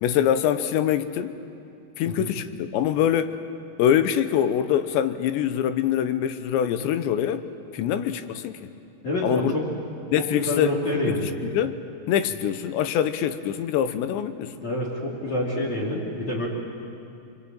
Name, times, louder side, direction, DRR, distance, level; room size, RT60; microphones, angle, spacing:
voice 1, 0.0-1.4 2.0-3.4 3.8-7.4 7.7-8.6 9.2-9.5 10.1-11.2 11.5-11.8 12.1-14.5, left 10 dB, 80° left, 10 dB, 3.2 m, -24 dB
voice 2, 9.0-9.7 10.2-11.3 14.6-16.5, left 1 dB, 45° left, -6 dB, 4.0 m, -27 dB
26.5 x 23.5 x 8.9 m, 2.6 s
omnidirectional pair, 5.1 m